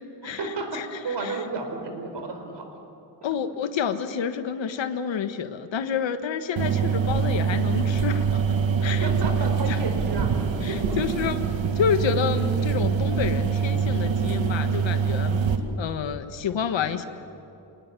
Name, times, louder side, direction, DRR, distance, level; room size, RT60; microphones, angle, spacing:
voice 1, 0.2-2.8 6.7-7.0 8.9-10.3 10.7-11.2 15.4-15.8, right 3 dB, 65° right, 4 dB, 4.4 m, -33 dB
voice 2, 3.2-8.4 8.8-9.1 9.7-9.8 10.6-11.4 11.7-15.4 15.8-17.1, left 7 dB, 75° left, 10 dB, 1.4 m, -28 dB
sound 1, 6.6-15.6, right 6 dB, 85° right, 1.9 m, -24 dB
26.0 x 19.0 x 9.8 m, 2.9 s
wide cardioid pair, 155°, 45 cm